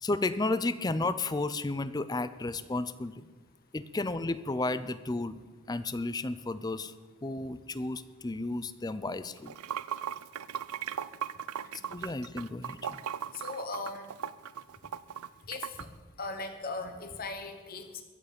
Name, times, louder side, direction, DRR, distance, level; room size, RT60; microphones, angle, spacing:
voice 1, 0.0-3.3 3.7-5.4 5.7-6.9 7.2-9.5 11.9-13.0, left 2 dB, 20° left, 14 dB, 0.5 m, -33 dB
Water / Sink (filling or washing), 9.4-15.8, right 9 dB, 85° right, 0.5 m, -37 dB
voice 2, 13.3-14.0 15.5-15.7 16.2-18.0, left 3 dB, 45° left, 6 dB, 1.2 m, -38 dB
22.5 x 7.9 x 5.2 m, 1.3 s
head